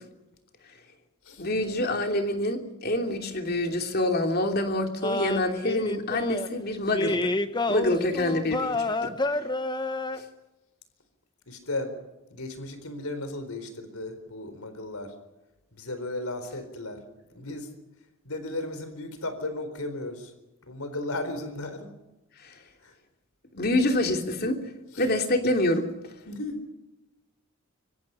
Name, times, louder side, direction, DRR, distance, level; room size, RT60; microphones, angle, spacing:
voice 1, 1.4-7.3 7.7-9.1 10.1-10.2 22.4-22.6 23.5-24.6 25.0-25.9, left 1 dB, 45° left, 4 dB, 3.0 m, -26 dB
sound 1, 5.0-6.5 6.9-10.2, left 2 dB, 20° left, 1.1 m, -29 dB
voice 2, 11.5-12.0 12.3-15.1 15.7-17.0 17.3-17.7 18.2-20.3 20.6-21.9 22.8-23.0 24.9-25.0 26.3-26.6, left 2 dB, 85° left, 9 dB, 4.2 m, -35 dB
26.0 x 24.0 x 5.7 m, 1.0 s
head